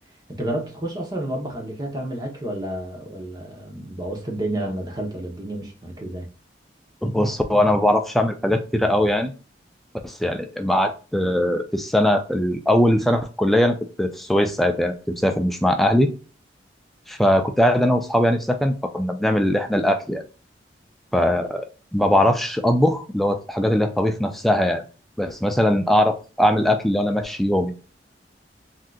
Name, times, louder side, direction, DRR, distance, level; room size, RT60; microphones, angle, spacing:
voice 1, 0.3-6.3, right 1 dB, 20° right, 0.8 m, -30 dB
voice 2, 7.0-9.3 10.0-16.1 17.1-20.2 21.1-21.7 21.9-24.8 25.2-27.7, equal, ahead, 0.3 m, -20 dB
3.6 x 2.7 x 2.3 m
head